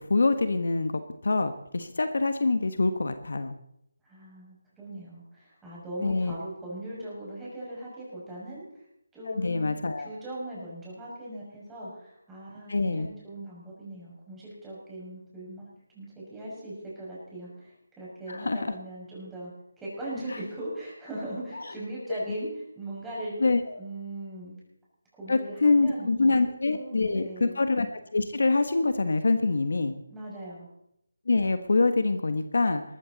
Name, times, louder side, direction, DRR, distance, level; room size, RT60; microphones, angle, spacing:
voice 1, 0.1-3.5 6.0-6.4 9.3-10.1 12.7-13.1 18.3-18.7 21.5-21.6 22.2-22.3 23.4-23.8 25.3-27.9 28.1-29.9 31.3-32.8, left 3 dB, 65° left, 9 dB, 1.3 m, -25 dB
voice 2, 4.0-8.8 9.1-15.6 15.9-19.5 19.8-22.5 22.7-23.4 23.8-24.6 25.2-27.6 30.1-30.7, right 1 dB, 5° right, -7 dB, 6.1 m, -39 dB
19.0 x 14.0 x 4.1 m, 0.75 s
figure-of-eight pair, 165°, 0 cm